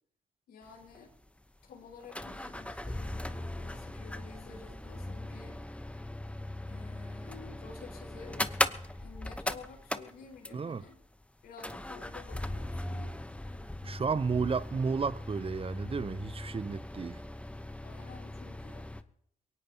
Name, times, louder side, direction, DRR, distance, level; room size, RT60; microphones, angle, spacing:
voice 1, 0.5-1.1 1.6-5.8 6.7-8.6 9.0-11.0 11.4-13.2 17.8-18.8, left 5 dB, 80° left, 4.7 m, -51 dB
sound 1, 0.6-0.7 0.9-1.0 1.9-10.8 11.6-19.0, left 1 dB, 5° left, 0.9 m, -38 dB
voice 2, 10.5-10.8 13.8-17.2, right 5 dB, 35° right, 0.7 m, -32 dB
22.5 x 18.0 x 2.9 m
hypercardioid pair, 45°, 16 cm